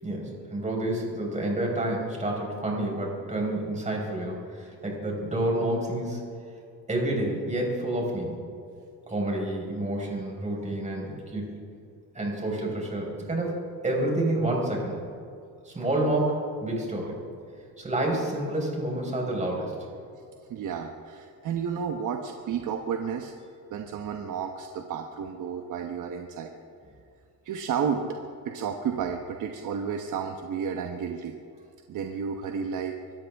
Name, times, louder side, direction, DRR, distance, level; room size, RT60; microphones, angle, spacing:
voice 1, 0.0-6.3 6.9-8.4 9.1-11.5 12.1-15.0 15.6-17.2 17.8-19.7, right 1 dB, 20° right, -1 dB, 4.8 m, -29 dB
voice 2, 20.5-23.3 23.7-26.5 27.4-31.4 31.9-33.0, right 7 dB, 60° right, 4 dB, 1.2 m, -32 dB
24.5 x 13.5 x 3.6 m, 2.4 s
cardioid pair, 120°, 35 cm